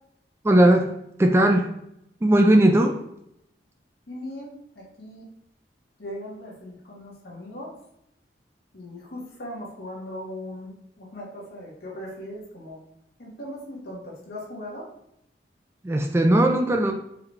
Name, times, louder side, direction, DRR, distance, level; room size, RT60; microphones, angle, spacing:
voice 1, 0.4-0.9 1.2-1.7 2.2-3.0 15.8-16.9, right 1 dB, 15° right, 3 dB, 0.3 m, -18 dB
voice 2, 4.1-5.3 6.0-7.7 8.7-12.8 13.2-14.9, left 1 dB, 65° left, -3 dB, 1.5 m, -39 dB
4.7 x 3.3 x 3.2 m, 0.77 s
head